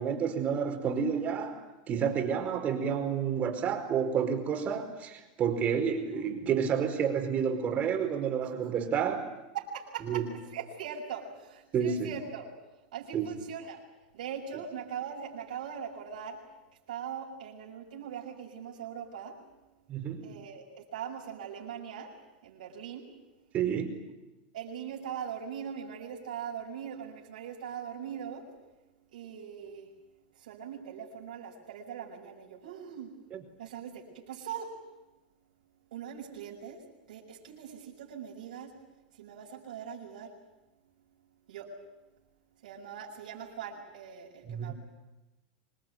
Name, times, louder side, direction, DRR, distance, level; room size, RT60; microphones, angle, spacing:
voice 1, 0.0-9.2 10.0-10.3 11.7-12.1 13.1-13.3 19.9-20.4 23.5-24.0 33.3-33.4 44.4-44.7, right 7 dB, 35° right, 5 dB, 4.9 m, -30 dB
voice 2, 9.5-12.5 12.9-13.8 14.1-16.4 16.9-19.4 20.2-22.1 22.4-23.1 24.5-28.5 29.1-29.9 30.4-33.1 33.6-34.7 35.9-36.8 37.1-38.8 39.1-40.3 41.5-41.7 42.6-44.7, right 8 dB, 80° right, -3 dB, 6.3 m, -41 dB
26.0 x 20.5 x 9.4 m, 1.1 s
supercardioid pair, 125°, 4 cm